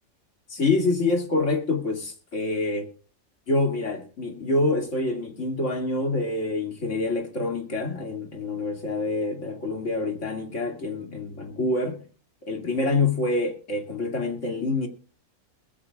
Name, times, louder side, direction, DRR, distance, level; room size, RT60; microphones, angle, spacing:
voice 1, 0.5-2.9 3.5-12.0 12.4-14.9, left 2 dB, 70° left, 2.8 m, -26 dB
21.0 x 14.5 x 2.4 m
omnidirectional pair, 1.3 m